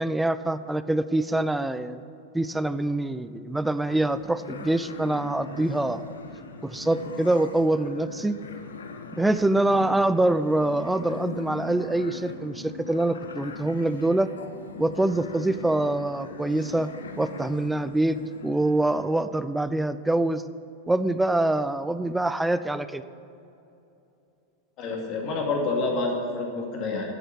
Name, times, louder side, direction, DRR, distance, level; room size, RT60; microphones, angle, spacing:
voice 1, 0.0-2.0 2.3-6.0 6.6-8.3 9.1-14.3 14.8-16.9 17.2-18.2 18.4-20.4 20.9-23.0, right 2 dB, 5° right, 13 dB, 0.5 m, -25 dB
sound 1, 3.9-19.2, left 4 dB, 70° left, 0.8 m, -41 dB
voice 2, 24.8-27.1, left 3 dB, 40° left, 0 dB, 2.5 m, -28 dB
11.0 x 7.7 x 8.7 m, 2.8 s
figure-of-eight pair, 90°, 0 cm